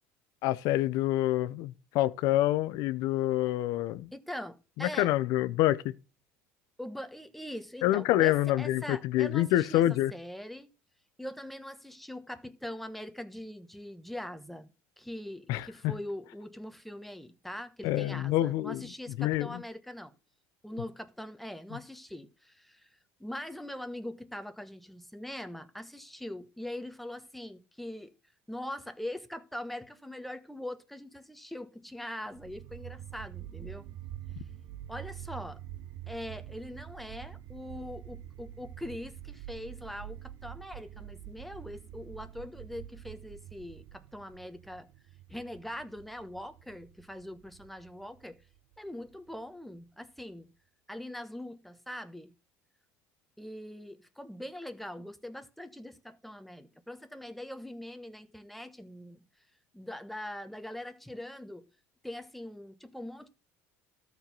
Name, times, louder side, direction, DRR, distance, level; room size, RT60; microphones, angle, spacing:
voice 1, 0.4-4.1 4.8-5.9 7.8-10.1 15.5-15.7 17.8-18.8 19.2-19.6, left 14 dB, 70° left, 0.6 m, -27 dB
voice 2, 4.1-5.2 6.8-10.7 11.2-14.7 15.0-20.1 20.6-22.9 23.2-28.1 28.5-33.9 34.9-35.6 36.1-44.9 45.3-48.4 48.8-50.5 50.9-52.3 53.4-59.2 59.7-61.6 62.0-63.3, left 1 dB, ahead, 1.1 m, -42 dB
sound 1, 32.3-49.4, right 12 dB, 65° right, 0.8 m, -46 dB
13.0 x 4.6 x 5.4 m
supercardioid pair, 100°, 7 cm